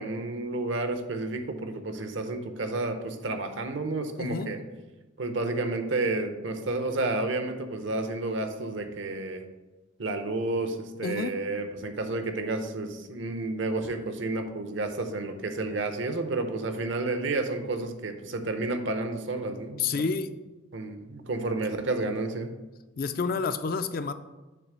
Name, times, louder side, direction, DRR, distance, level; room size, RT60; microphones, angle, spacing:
voice 1, 0.0-4.6 5.2-9.4 10.0-19.9 20.7-22.5, right 2 dB, 70° right, 7 dB, 0.7 m, -31 dB
voice 2, 4.2-4.5 11.0-11.4 19.8-20.3 23.0-24.1, left 4 dB, 50° left, 10 dB, 0.4 m, -29 dB
7.0 x 3.3 x 6.1 m, 1.1 s
head